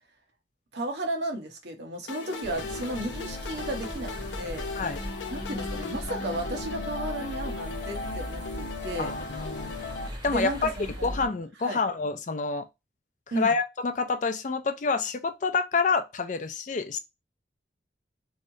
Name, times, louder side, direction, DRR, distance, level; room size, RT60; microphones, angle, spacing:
voice 1, 0.7-4.7 5.3-9.1 10.3-11.1 11.6-11.8 13.3-13.5, right 1 dB, 70° right, 1.0 m, -34 dB
sound 1, 2.1-10.1, left 3 dB, 85° left, 0.7 m, -37 dB
sound 2, 2.4-11.3, equal, 20° right, 1.2 m, -39 dB
voice 2, 9.0-9.7 10.2-10.7 11.0-12.7 13.4-17.0, left 4 dB, 45° left, 0.4 m, -28 dB
3.2 x 2.8 x 2.7 m
head